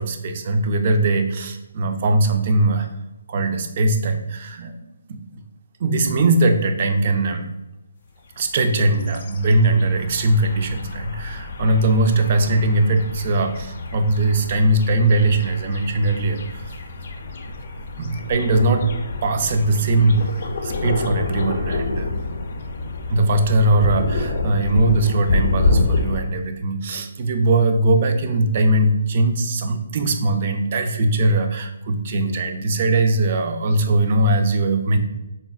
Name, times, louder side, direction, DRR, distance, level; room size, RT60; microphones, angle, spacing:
voice 1, 0.0-2.9 3.3-4.8 5.1-5.2 5.8-7.5 8.4-16.7 18.0-18.9 19.2-20.3 20.6-22.1 23.1-35.0, right 2 dB, 40° right, 7 dB, 0.3 m, -20 dB
sound 1, 8.4-26.2, left 3 dB, 50° left, 0.4 m, -27 dB
3.9 x 2.0 x 2.3 m, 0.97 s
hypercardioid pair, 155°, 0 cm